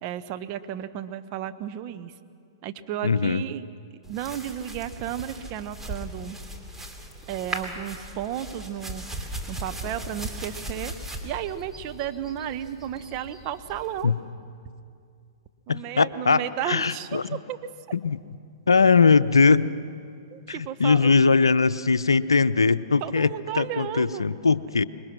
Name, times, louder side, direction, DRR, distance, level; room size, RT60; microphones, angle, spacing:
voice 1, 0.0-2.1 2.6-3.7 4.1-6.4 7.3-9.2 9.5-10.9 11.2-14.1 15.7-17.6 20.3-21.1 23.0-24.2, right 10 dB, 40° right, 9 dB, 1.2 m, -33 dB
voice 2, 3.0-3.4 14.0-14.2 15.7-17.4 17.9-18.2 18.7-19.7 20.5-24.8, left 4 dB, 85° left, 15 dB, 0.6 m, -21 dB
sound 1, 4.0-14.0, right 1 dB, 10° right, 2.9 m, -38 dB
26.5 x 22.0 x 6.2 m, 2.3 s
hypercardioid pair, 115°, 2 cm